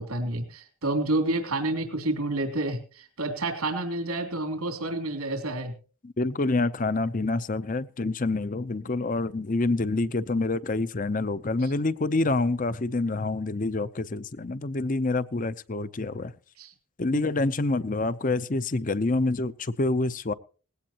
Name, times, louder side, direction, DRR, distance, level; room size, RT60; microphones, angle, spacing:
voice 1, 0.0-5.7 16.6-16.7 17.1-17.3, right 2 dB, 85° right, 3.2 m, -29 dB
voice 2, 6.0-16.3 17.0-20.3, left 2 dB, 35° left, 0.6 m, -27 dB
19.5 x 16.5 x 2.9 m
head